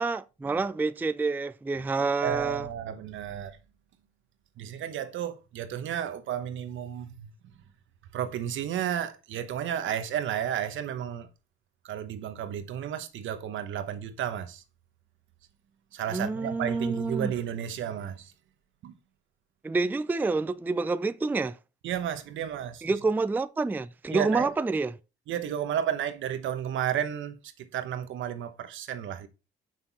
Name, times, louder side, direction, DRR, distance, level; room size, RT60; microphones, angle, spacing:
voice 1, 0.0-2.7 16.1-17.3 19.6-21.6 22.8-24.9, right 3 dB, 10° right, 0.3 m, -28 dB
voice 2, 2.0-3.6 4.6-7.3 8.1-11.3 11.8-14.6 15.9-18.3 18.8-18.9 21.8-22.8 24.1-24.5 25.3-29.3, right 10 dB, 75° right, 1.0 m, -32 dB
6.6 x 5.8 x 4.1 m
cardioid pair, 90°, 20 cm